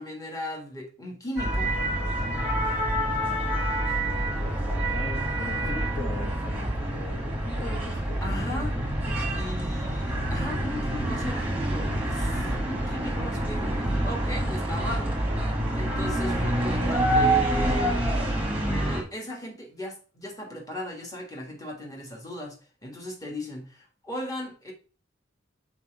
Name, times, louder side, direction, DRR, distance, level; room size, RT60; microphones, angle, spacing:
voice 1, 0.0-1.7 8.2-8.8 9.3-15.2 15.5-18.0 18.6-24.7, left 1 dB, 15° left, 1.5 m, -37 dB
sound 1, 1.4-19.0, right 1 dB, 10° right, 1.2 m, -27 dB
voice 2, 4.4-9.2, left 2 dB, 40° left, 1.1 m, -40 dB
6.0 x 4.3 x 4.5 m
head